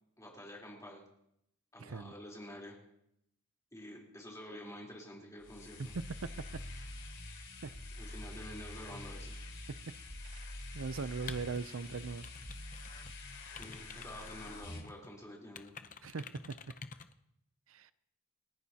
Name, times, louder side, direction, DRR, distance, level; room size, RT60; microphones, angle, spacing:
voice 1, 0.2-1.0 1.7-2.8 3.7-5.9 8.0-9.3 13.6-15.7, equal, 15° left, -3 dB, 3.6 m, -49 dB
voice 2, 1.8-2.1 5.8-6.6 7.6-7.7 9.7-9.9 10.2-10.5 10.7-12.3 16.0-16.6 17.7-17.9, right 4 dB, 65° right, 15 dB, 0.5 m, -40 dB
sound 1, 5.4-14.8, left 2 dB, 55° left, 4.2 m, -46 dB
sound 2, 11.3-13.1 13.4-15.1 15.5-17.1, left 5 dB, 35° left, 0.7 m, -50 dB
29.5 x 11.0 x 2.9 m, 0.77 s
head